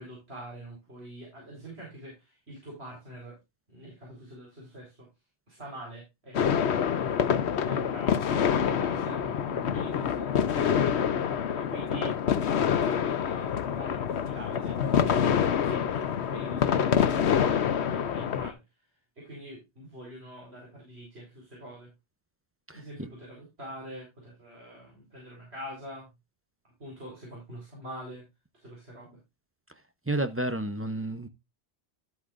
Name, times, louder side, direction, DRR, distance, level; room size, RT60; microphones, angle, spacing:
voice 1, 0.0-3.4 3.7-5.1 5.5-10.9 11.5-12.2 12.5-18.6 19.2-21.9 22.7-26.1 26.8-28.2 28.5-29.2, equal, 70° right, 4.6 m, -44 dB
sound 1, 6.3-18.5, left 8 dB, 80° left, 1.1 m, -26 dB
voice 2, 22.7-23.1 30.1-31.3, right 1 dB, 15° right, 0.6 m, -31 dB
12.0 x 8.4 x 2.5 m
omnidirectional pair, 1.1 m